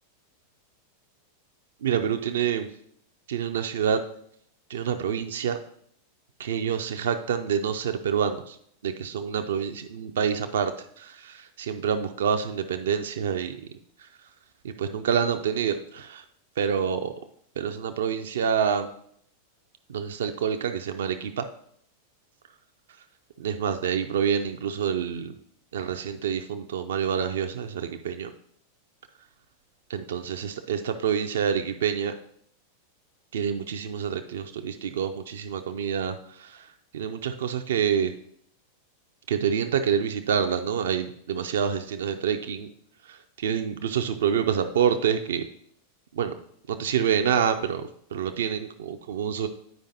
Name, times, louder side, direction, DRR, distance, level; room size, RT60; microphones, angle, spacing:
voice 1, 1.8-2.7 3.3-4.0 4.7-5.6 6.4-8.6 8.8-13.6 14.0-14.1 14.6-16.2 16.6-17.1 17.6-18.9 19.9-21.5 23.4-25.3 25.7-28.3 29.9-32.1 33.3-36.7 36.9-38.1 39.3-42.7 43.0-45.4 46.1-46.3 46.7-49.5, right 7 dB, 60° right, 7 dB, 0.4 m, -27 dB
8.9 x 5.0 x 2.7 m, 0.68 s
figure-of-eight pair, 90°, 0 cm